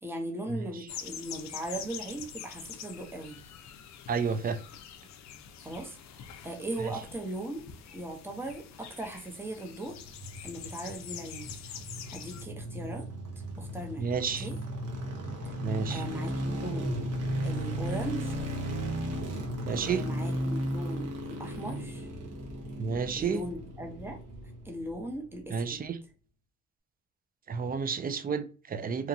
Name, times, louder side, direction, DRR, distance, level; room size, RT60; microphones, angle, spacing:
voice 1, 0.0-3.4 5.6-7.6 7.9-10.0 10.4-11.4 12.1-13.1 13.6-14.1 14.4-14.6 15.5-15.6 15.9-16.9 17.4-18.4 19.7-22.1 23.2-24.2 24.6-25.9, right 1 dB, 5° right, 0.7 m, -38 dB
sound 1, 0.9-12.4, left 9 dB, 65° left, 0.5 m, -45 dB
voice 2, 4.1-4.6 6.8-6.9 14.0-14.5 15.6-16.0 19.7-20.0 22.7-23.4 25.5-26.0 27.5-29.1, right 5 dB, 30° right, 0.4 m, -31 dB
sound 2, 9.9-25.1 25.4-25.5, right 1 dB, 60° right, 0.9 m, -35 dB
2.9 x 2.2 x 2.6 m
cardioid pair, 90°, 30 cm